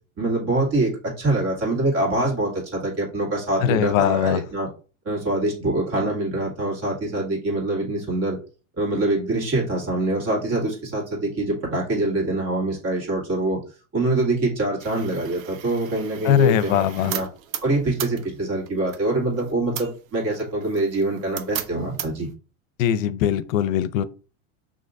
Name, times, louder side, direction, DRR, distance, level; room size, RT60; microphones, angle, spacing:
voice 1, 0.2-4.7 5.1-8.4 8.8-13.6 13.9-17.3 17.6-22.3, right 2 dB, 35° right, 2.2 m, -24 dB
voice 2, 3.6-4.4 16.2-17.1 22.8-24.0, left 11 dB, 70° left, 0.6 m, -21 dB
sound 1, 14.8-22.3, right 10 dB, 75° right, 0.9 m, -37 dB
6.2 x 3.0 x 2.6 m
supercardioid pair, 145°, 41 cm